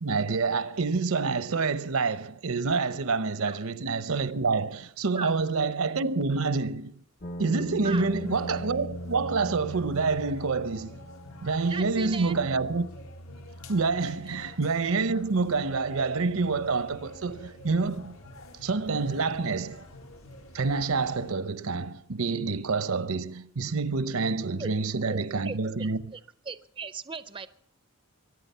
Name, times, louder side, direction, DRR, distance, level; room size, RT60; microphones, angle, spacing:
voice 1, 0.0-7.0 7.4-11.0 11.4-12.9 13.7-18.2 18.6-19.8 20.5-26.1, right 4 dB, 75° right, 0.8 m, -27 dB
sound 1, 7.2-21.2, equal, 40° left, 0.8 m, -43 dB
sound 2, 7.9-21.3, left 2 dB, 75° left, 1.7 m, -48 dB
voice 2, 11.7-12.3 24.6-24.7 25.1-25.2 25.4-26.2 26.5-27.5, right 4 dB, 25° right, 0.5 m, -38 dB
23.0 x 9.7 x 5.6 m
head